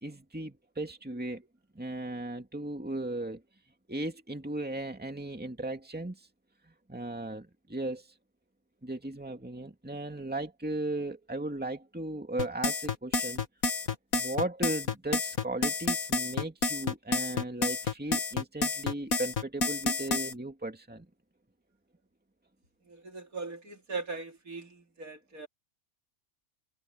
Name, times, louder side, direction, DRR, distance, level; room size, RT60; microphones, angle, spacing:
voice 1, 0.0-1.5 1.8-3.4 3.9-6.2 6.9-8.1 8.8-13.4 14.1-21.1, right 2 dB, 5° right, 2.3 m, -36 dB
sound 1, 12.4-20.3, left 3 dB, 70° left, 2.2 m, -29 dB
voice 2, 22.8-25.5, right 4 dB, 70° right, 3.3 m, -40 dB
omnidirectional pair, 1.5 m